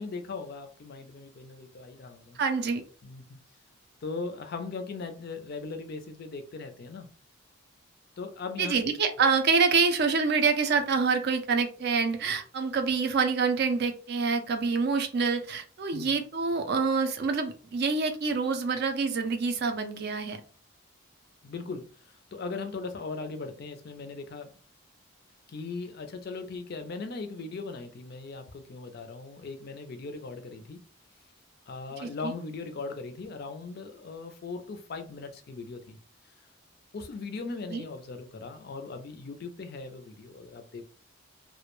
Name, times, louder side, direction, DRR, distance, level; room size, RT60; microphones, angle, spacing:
voice 1, 0.0-2.4 3.0-3.4 4.0-7.1 8.2-8.8 15.9-16.2 21.4-24.5 25.5-30.8 31.7-36.0 36.9-40.8, left 4 dB, 45° left, 0.4 m, -39 dB
voice 2, 2.4-2.8 8.6-20.4 32.0-32.3 37.7-37.8, right 5 dB, 50° right, 0.4 m, -26 dB
2.2 x 2.1 x 2.9 m
head